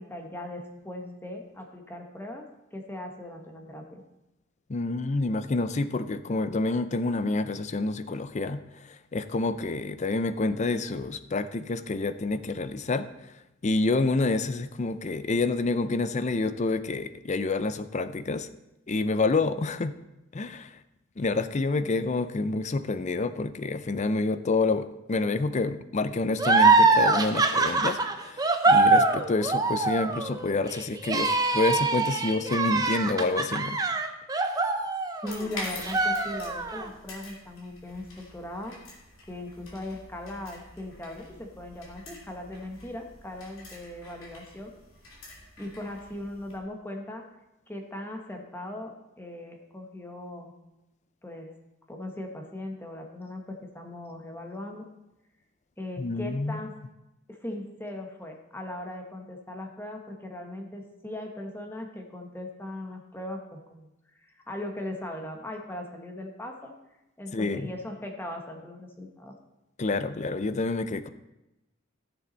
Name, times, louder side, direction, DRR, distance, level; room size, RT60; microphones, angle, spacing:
voice 1, 0.0-2.4 2.7-4.0 35.2-38.8 39.3-44.7 45.6-47.2 47.7-50.5 51.2-51.5 51.9-54.9 55.8-56.7 57.3-63.9 64.2-66.7 67.2-69.3, left 1 dB, 10° left, 2 dB, 1.1 m, -39 dB
voice 2, 4.7-13.1 13.6-18.5 18.9-20.0 20.3-20.8 21.2-33.8 56.0-56.6 67.3-67.7 69.8-71.1, left 3 dB, 35° left, 12 dB, 0.5 m, -28 dB
sound 1, 26.4-35.5 35.8-36.9, right 3 dB, 20° right, 0.7 m, -23 dB
sound 2, 35.3-46.6, left 2 dB, 90° left, 2.8 m, -46 dB
14.0 x 7.0 x 4.0 m, 0.93 s
head